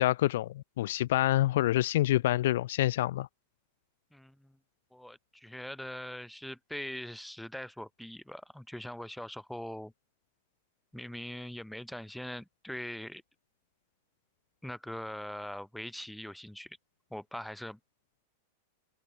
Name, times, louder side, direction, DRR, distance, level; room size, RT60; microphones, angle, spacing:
voice 1, 0.0-3.3, left 14 dB, 65° left, 1.3 m, -27 dB
voice 2, 4.1-4.6 4.9-9.9 10.9-13.2 14.6-16.8 17.1-17.8, left 1 dB, ahead, 2.5 m, -42 dB
supercardioid pair, 165°, 0 cm